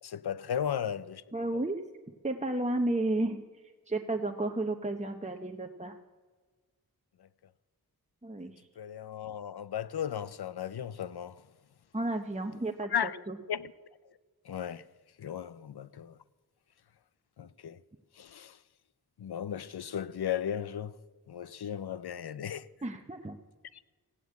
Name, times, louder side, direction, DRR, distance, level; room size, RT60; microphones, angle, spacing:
voice 1, 0.0-1.2 8.8-11.4 12.9-13.2 13.5-13.9 14.4-14.8 15.2-16.2 17.4-17.8 18.2-18.6 19.2-20.9 21.3-22.7 23.7-23.8, left 9 dB, 80° left, 0.6 m, -35 dB
voice 2, 1.3-1.8 2.2-3.4 3.9-6.0 8.2-8.7 11.9-13.4 22.8-23.4, right 2 dB, 20° right, 0.9 m, -32 dB
15.5 x 9.2 x 8.3 m
wide cardioid pair, 50°, 38 cm